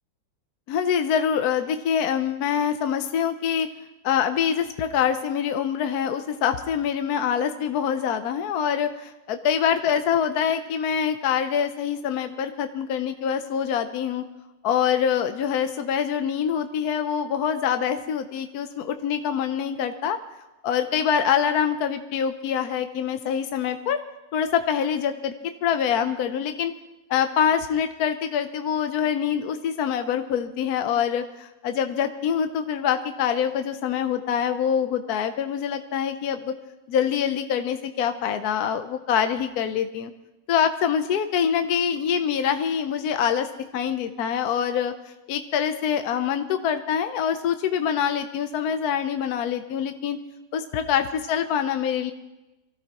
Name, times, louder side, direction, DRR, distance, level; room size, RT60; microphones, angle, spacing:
voice 1, 0.7-3.7 4.0-14.2 14.6-20.2 20.6-24.0 24.3-25.3 25.6-26.7 27.1-36.5 36.9-40.1 40.5-43.5 43.7-44.9 45.3-50.2 50.5-52.1, left 8 dB, 65° left, 8 dB, 1.0 m, -25 dB
24.5 x 15.5 x 2.9 m, 1.0 s
omnidirectional pair, 2.0 m